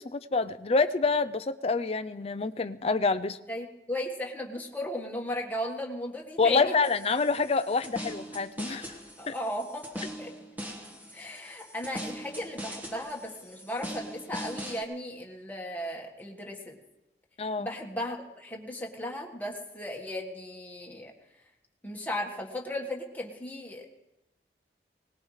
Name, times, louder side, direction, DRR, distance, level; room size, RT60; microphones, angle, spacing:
voice 1, 0.0-3.4 6.4-8.9 9.3-9.4 17.4-17.7, left 4 dB, 35° left, 11 dB, 0.5 m, -27 dB
voice 2, 3.5-6.7 9.2-10.3 11.1-16.8 17.6-21.1 21.8-23.9, left 1 dB, 10° left, -1 dB, 1.5 m, -36 dB
sound 1, 6.8-14.8, equal, 10° right, 1.3 m, -41 dB
21.0 x 19.0 x 3.2 m, 0.97 s
head